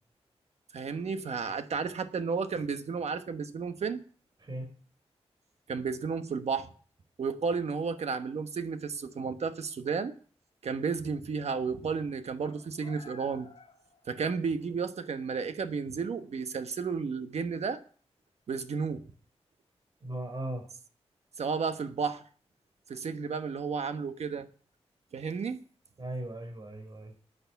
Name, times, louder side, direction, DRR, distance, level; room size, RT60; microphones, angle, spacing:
voice 1, 0.7-4.0 5.7-6.7 7.2-10.1 10.6-13.5 14.1-17.8 18.5-19.0 21.4-22.2 22.9-24.5 25.1-25.6, right 5 dB, 75° right, 9 dB, 1.2 m, -32 dB
sound 1, 12.4-14.6 14.9-15.0 16.2-16.3, left 4 dB, 55° left, 2.6 m, -53 dB
voice 2, 20.0-20.6 26.0-27.1, right 1 dB, 40° right, 5 dB, 4.2 m, -37 dB
10.5 x 9.7 x 7.0 m, 0.43 s
wide cardioid pair, 130°, 11 cm